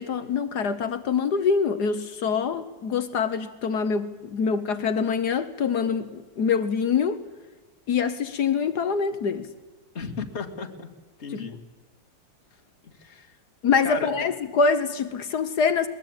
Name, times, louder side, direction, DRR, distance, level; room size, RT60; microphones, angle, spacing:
voice 1, 0.0-7.2 7.9-9.5 11.3-11.4 13.6-15.9, left 5 dB, 65° left, 10 dB, 1.6 m, -25 dB
voice 2, 9.9-10.9 11.2-11.6 12.8-13.3 13.8-14.3, left 5 dB, 35° left, 4 dB, 2.2 m, -34 dB
21.5 x 21.0 x 8.9 m, 1.2 s
omnidirectional pair, 2.0 m